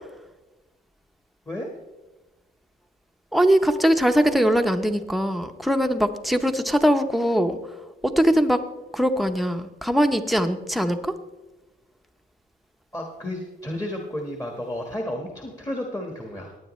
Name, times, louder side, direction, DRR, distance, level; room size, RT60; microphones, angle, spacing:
voice 1, 3.3-7.6 8.0-8.6 8.9-11.1, equal, ahead, 6 dB, 0.8 m, -21 dB
voice 2, 12.9-16.6, left 1 dB, 15° left, 1 dB, 1.5 m, -32 dB
17.5 x 9.2 x 3.2 m, 1.1 s
cardioid pair, 90°, 20 cm